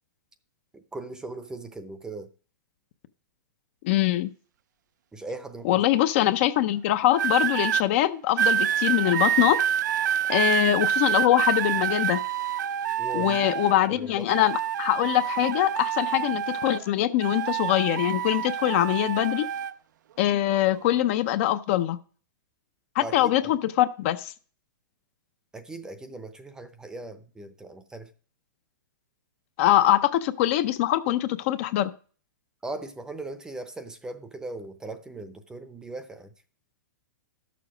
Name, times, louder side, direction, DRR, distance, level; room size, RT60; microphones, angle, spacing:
voice 1, 0.7-2.3 5.1-5.8 13.0-14.4 23.0-23.5 25.5-28.1 32.6-36.3, right 2 dB, 5° right, 0.7 m, -39 dB
voice 2, 3.8-4.3 5.6-9.6 10.3-12.2 13.1-19.5 20.2-22.0 23.0-24.3 29.6-31.9, left 13 dB, 40° left, 0.6 m, -23 dB
sound 1, 7.1-7.8 8.4-13.9 14.3-16.9 17.2-19.7 20.5-20.8, right 9 dB, 65° right, 0.5 m, -27 dB
11.5 x 6.9 x 5.0 m
hypercardioid pair, 150°, 10 cm